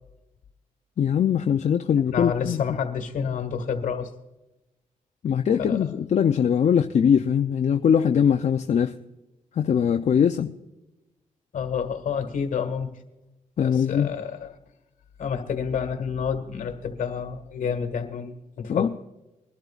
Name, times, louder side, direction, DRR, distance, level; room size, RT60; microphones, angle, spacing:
voice 1, 1.0-2.6 5.2-8.9 9.6-10.5 13.6-14.1 18.7-18.9, left 8 dB, 60° left, 6 dB, 0.6 m, -21 dB
voice 2, 2.1-4.1 5.6-5.9 11.5-12.9 13.6-14.6 15.2-18.9, left 6 dB, 75° left, 6 dB, 1.7 m, -29 dB
23.0 x 12.0 x 2.5 m, 0.99 s
cardioid pair, 80°, 14 cm